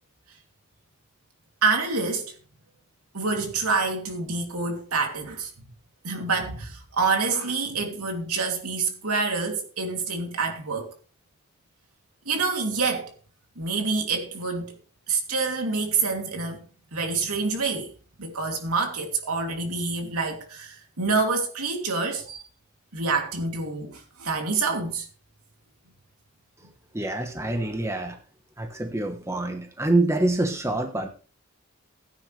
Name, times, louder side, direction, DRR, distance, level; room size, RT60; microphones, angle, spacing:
voice 1, 1.6-2.3 3.1-5.5 6.0-10.9 12.2-13.1 13.6-14.8 15.1-16.6 16.9-17.9 18.2-22.4 22.9-25.1, right 4 dB, 85° right, 2.9 m, -27 dB
voice 2, 26.9-28.2 28.6-31.1, right 2 dB, 10° right, 1.2 m, -26 dB
16.0 x 9.3 x 3.3 m
head